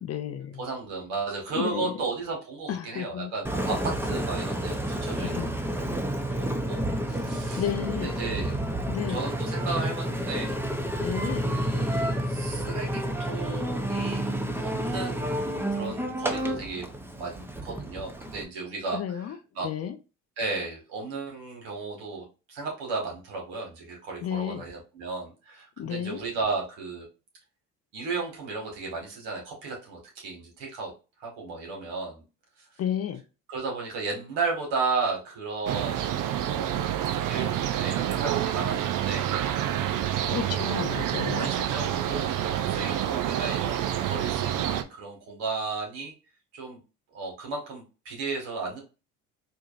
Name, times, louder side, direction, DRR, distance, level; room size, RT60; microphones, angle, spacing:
voice 1, 0.0-0.6 1.5-2.0 2.7-3.3 5.2-5.5 7.6-8.1 8.9-9.2 11.0-11.5 18.9-19.4 19.6-20.0 24.2-24.6 25.8-26.2 32.8-33.2 40.3-41.5, left 10 dB, 35° left, 10 dB, 0.6 m, -32 dB
voice 2, 0.6-6.0 6.3-7.7 7.9-8.5 9.1-10.6 11.4-16.9 17.2-19.7 20.4-27.1 27.9-30.9 31.2-32.2 33.5-36.2 36.5-36.9 37.2-39.3 40.2-40.6 41.4-46.1 46.5-46.8 47.1-48.8, right 4 dB, 70° right, 0 dB, 1.9 m, -34 dB
Engine, 3.4-18.4, right 1 dB, 5° right, 0.7 m, -30 dB
sound 1, 35.7-44.8, right 11 dB, 50° right, 0.6 m, -28 dB
4.4 x 2.7 x 2.5 m, 0.30 s
hypercardioid pair, 65°, 41 cm